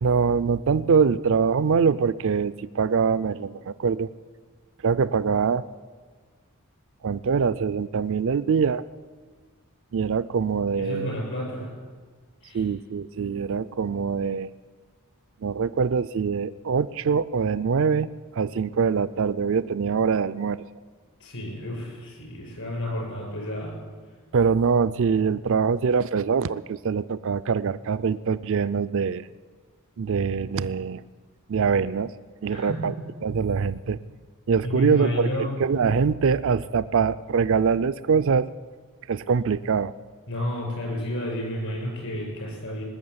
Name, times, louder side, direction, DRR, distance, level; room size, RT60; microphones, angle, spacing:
voice 1, 0.0-4.1 4.8-5.6 7.0-8.8 9.9-11.2 12.5-14.5 15.4-18.1 18.3-20.6 24.3-29.3 30.0-31.0 31.5-32.1 32.4-32.9 33.2-34.0 34.5-38.5 39.1-39.9, right 6 dB, 60° right, 15 dB, 0.4 m, -23 dB
voice 2, 10.8-11.7 12.4-12.6 21.2-23.7 32.5-33.0 34.6-35.5 40.3-42.8, left 1 dB, 65° left, -1 dB, 6.6 m, -31 dB
19.5 x 7.0 x 9.6 m, 1.5 s
head